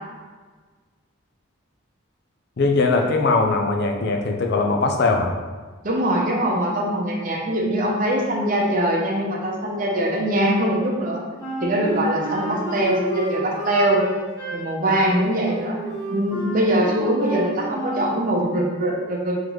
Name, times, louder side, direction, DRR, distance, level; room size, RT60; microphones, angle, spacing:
voice 1, 2.6-5.3, left 3 dB, 50° left, 3 dB, 0.4 m, -20 dB
voice 2, 5.8-11.2 11.6-14.0 14.5-19.4, right 1 dB, 40° right, -2 dB, 0.7 m, -22 dB
Wind instrument woodwind instrument, 11.4-18.2, right 2 dB, 20° left, 1.3 m, -31 dB
3.8 x 3.1 x 3.1 m, 1.4 s
head